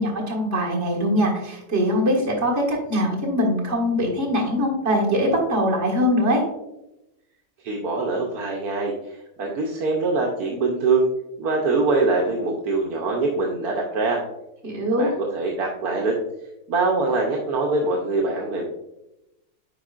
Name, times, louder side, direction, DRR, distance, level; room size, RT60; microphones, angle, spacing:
voice 1, 0.0-6.4 14.6-15.1, equal, 45° right, -3 dB, 2.0 m, -22 dB
voice 2, 7.6-11.1 11.4-14.2 15.0-16.2 16.7-18.7, right 3 dB, 75° right, -1 dB, 1.3 m, -23 dB
8.8 x 4.8 x 2.4 m, 0.91 s
omnidirectional pair, 1.7 m